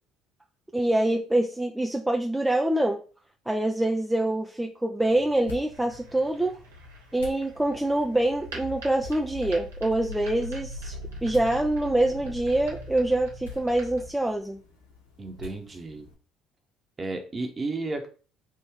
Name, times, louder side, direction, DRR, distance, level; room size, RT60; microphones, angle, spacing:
voice 1, 0.7-3.0 3.5-6.6 7.1-11.0 11.2-14.6, right 1 dB, 10° right, 2 dB, 0.5 m, -25 dB
sound 1, 5.0-16.1, left 3 dB, 85° left, 1.0 m, -49 dB
Mind Harmonics, 5.7-14.1, equal, 80° right, 1.0 m, -41 dB
voice 2, 15.2-16.1 17.0-18.1, right 2 dB, 30° right, 5 dB, 1.0 m, -33 dB
3.6 x 2.6 x 4.6 m, 0.38 s
hypercardioid pair, 55°, 0 cm